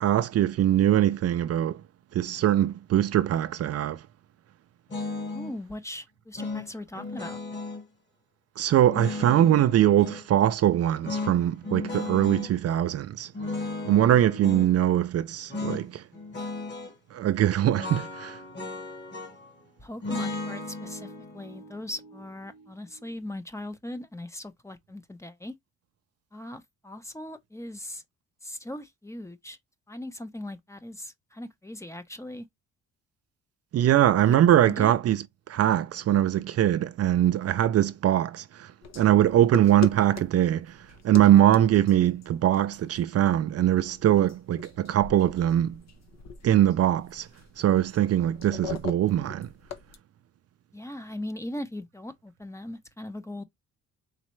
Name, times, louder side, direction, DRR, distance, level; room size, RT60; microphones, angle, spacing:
voice 1, 0.0-1.8 2.1-4.0 8.6-13.3 13.8-16.0 17.1-18.4 33.7-40.8 41.0-45.8 46.4-47.3 47.6-49.5, right 12 dB, 55° right, 0.5 m, -22 dB
sound 1, 4.9-5.6 6.4-7.8 8.8-10.2 11.0-12.5 13.3-14.7 15.5-15.9 16.1-16.9 17.8-19.5 20.0-23.1, left 3 dB, 35° left, 1.7 m, -35 dB
voice 2, 5.3-7.4 19.8-25.5 26.3-28.0 28.4-29.6 29.9-32.5 34.2-34.4 34.7-34.9 50.7-53.4, left 1 dB, 10° left, 0.7 m, -39 dB
sound 2, 38.8-50.0, left 6 dB, 60° left, 0.9 m, -41 dB
4.1 x 3.3 x 3.1 m
cardioid pair, 90°, 30 cm